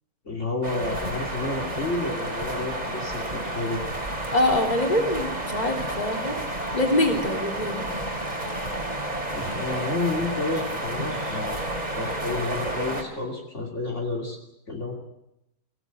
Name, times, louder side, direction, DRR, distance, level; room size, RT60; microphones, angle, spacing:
voice 1, 0.2-3.8 9.3-14.4 14.7-14.9, left 2 dB, 55° left, 0 dB, 3.1 m, -30 dB
sound 1, 0.6-13.0, right 1 dB, 30° right, 3.3 m, -31 dB
voice 2, 4.3-6.4 6.7-7.8, left 1 dB, 30° left, 2 dB, 3.5 m, -24 dB
24.0 x 17.5 x 8.2 m, 0.85 s
omnidirectional pair, 1.5 m